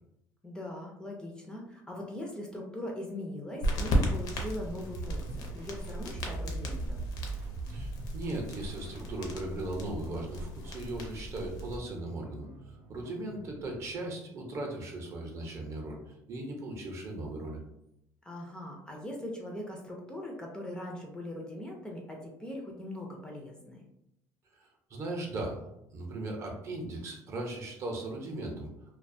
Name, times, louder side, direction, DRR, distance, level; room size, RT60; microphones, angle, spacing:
voice 1, 0.4-7.1 18.2-23.8, left 1 dB, 10° left, 0 dB, 0.4 m, -41 dB
sound 1, 3.6-11.8, equal, 70° left, 0.5 m, -35 dB
sound 2, 4.3-14.0, right 3 dB, 85° right, 0.7 m, -43 dB
voice 2, 7.7-17.6 24.5-28.7, right 2 dB, 40° right, 1 dB, 0.6 m, -38 dB
2.3 x 2.2 x 2.5 m, 0.82 s
cardioid pair, 140°, 7 cm